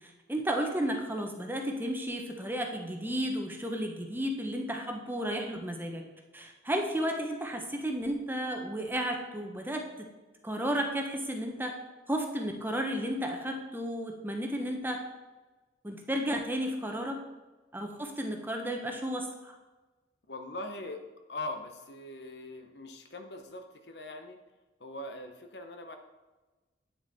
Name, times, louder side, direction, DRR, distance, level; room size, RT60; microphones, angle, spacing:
voice 1, 0.3-6.0 6.3-9.8 10.4-11.7 12.1-15.0 15.8-17.2 17.7-19.5, equal, 10° right, 3 dB, 1.0 m, -33 dB
voice 2, 20.3-21.0 21.3-24.4 24.8-26.0, left 2 dB, 65° left, 6 dB, 1.0 m, -41 dB
9.3 x 6.6 x 4.2 m, 1.2 s
head